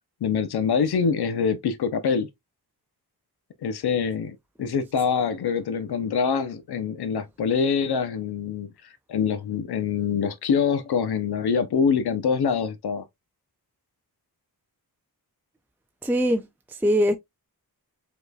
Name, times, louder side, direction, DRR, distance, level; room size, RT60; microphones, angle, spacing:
voice 1, 0.2-2.3 3.6-8.7 9.1-13.0, left 6 dB, 80° left, 0.7 m, -25 dB
voice 2, 16.0-17.2, equal, 5° right, 0.4 m, -22 dB
5.1 x 3.1 x 2.3 m
wide cardioid pair, 105°, 38 cm